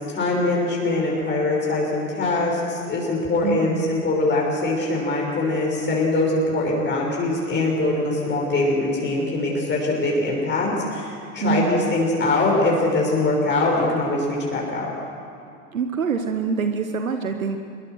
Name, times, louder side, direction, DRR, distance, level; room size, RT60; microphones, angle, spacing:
voice 1, 0.1-14.9, left 2 dB, 25° left, -2 dB, 6.0 m, -22 dB
voice 2, 3.4-3.9 11.4-11.9 15.7-17.6, right 5 dB, 80° right, 7 dB, 1.3 m, -25 dB
25.5 x 22.5 x 6.4 m, 2.6 s
figure-of-eight pair, 80°, 41 cm